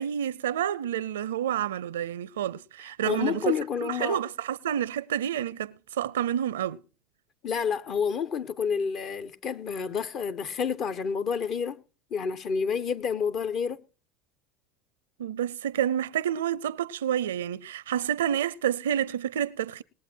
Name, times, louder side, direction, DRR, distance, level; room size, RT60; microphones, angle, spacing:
voice 1, 0.0-3.5 3.8-6.8 15.2-19.8, right 10 dB, 90° right, 0.5 m, -29 dB
voice 2, 3.0-4.2 7.4-11.8 12.1-13.8, left 6 dB, 50° left, 1.0 m, -29 dB
20.0 x 8.0 x 4.5 m
hypercardioid pair, 90°, 0 cm